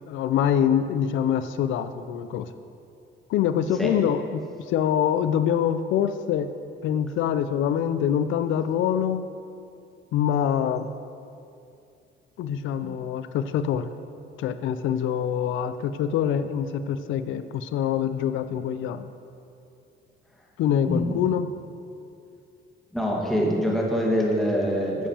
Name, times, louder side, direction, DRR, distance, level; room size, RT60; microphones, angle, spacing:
voice 1, 0.0-2.5 3.3-4.4 4.7-6.5 6.8-9.3 10.1-10.9 12.4-13.9 14.4-19.1 20.6-21.5, left 9 dB, 80° left, 11 dB, 0.4 m, -25 dB
voice 2, 20.9-21.2 22.9-25.1, equal, ahead, -3 dB, 1.6 m, -24 dB
11.5 x 7.3 x 2.9 m, 2.5 s
cardioid pair, 90°, 20 cm